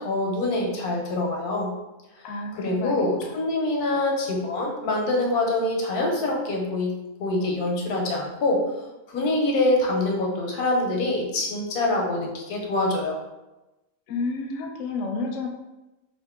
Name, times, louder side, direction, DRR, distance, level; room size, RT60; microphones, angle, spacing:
voice 1, 0.0-1.7 2.6-6.9 7.2-8.6 9.1-13.2, left 2 dB, 85° left, 0 dB, 1.2 m, -25 dB
voice 2, 2.2-3.3 14.1-15.5, left 3 dB, 70° left, 1 dB, 0.9 m, -31 dB
2.8 x 2.5 x 3.5 m, 1.0 s
omnidirectional pair, 1.6 m